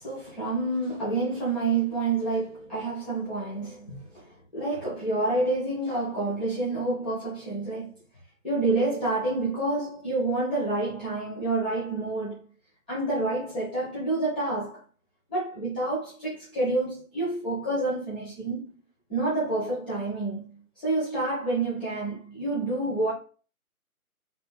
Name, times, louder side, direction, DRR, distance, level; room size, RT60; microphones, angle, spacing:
voice 1, 0.0-8.0 8.4-12.4 12.9-14.8 15.3-18.7 19.1-23.1, right 2 dB, 5° left, 0.6 m, -28 dB
3.0 x 2.8 x 3.4 m
figure-of-eight pair, 150°, 44 cm